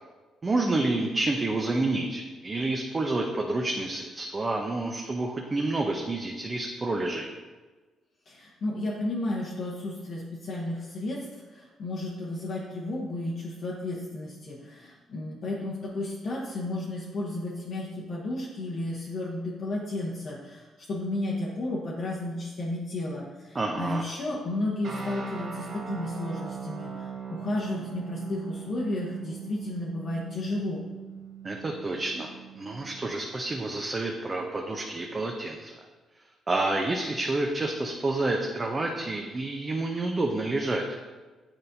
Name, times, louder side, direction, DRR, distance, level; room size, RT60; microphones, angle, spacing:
voice 1, 0.4-7.3 23.5-24.0 31.4-32.3 32.6-35.7 36.5-40.8, right 2 dB, 30° right, 1 dB, 0.6 m, -29 dB
voice 2, 8.3-30.8, left 2 dB, 60° left, -5 dB, 0.9 m, -33 dB
sound 1, 24.8-33.1, right 6 dB, 60° right, 1.2 m, -40 dB
8.8 x 4.1 x 2.6 m, 1.3 s
cardioid pair, 90°, 0 cm